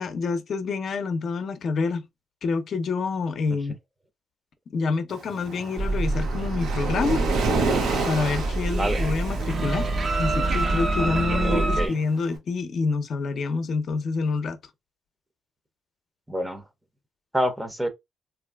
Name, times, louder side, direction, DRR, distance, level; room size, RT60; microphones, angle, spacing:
voice 1, 0.0-2.0 2.4-3.8 4.7-7.2 8.0-9.9 10.2-14.6, left 4 dB, 60° left, 0.6 m, -27 dB
Waves surf, 5.1-12.2, right 4 dB, 85° right, 0.8 m, -31 dB
sound 1, 5.8-11.9, right 2 dB, 50° right, 0.6 m, -26 dB
voice 2, 11.4-12.0 16.3-16.7 17.3-17.9, equal, 10° right, 0.6 m, -27 dB
3.0 x 2.6 x 2.3 m
cardioid pair, 80°, 0 cm